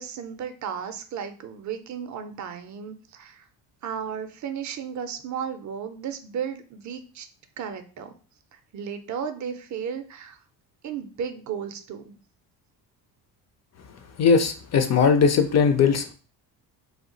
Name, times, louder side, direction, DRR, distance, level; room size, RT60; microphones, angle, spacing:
voice 1, 0.0-3.4 3.8-7.3 7.6-8.1 8.5-10.4 10.8-12.1, right 7 dB, 40° right, 0.5 m, -34 dB
voice 2, 14.2-16.0, left 6 dB, 40° left, 0.4 m, -19 dB
2.3 x 2.0 x 3.8 m
supercardioid pair, 80°, 45 cm